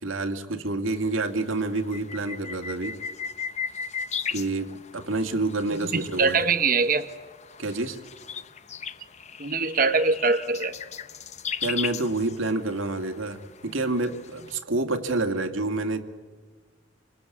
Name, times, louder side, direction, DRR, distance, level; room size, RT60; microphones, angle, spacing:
voice 1, 0.0-3.0 4.3-6.4 7.6-8.0 11.6-16.0, right 2 dB, 90° right, 6 dB, 2.2 m, -28 dB
sound 1, 0.9-14.6, left 7 dB, 35° left, 0.7 m, -37 dB
voice 2, 5.9-7.1 9.4-10.7, right 4 dB, 45° right, 6 dB, 1.0 m, -23 dB
27.0 x 25.0 x 8.5 m, 1.4 s
head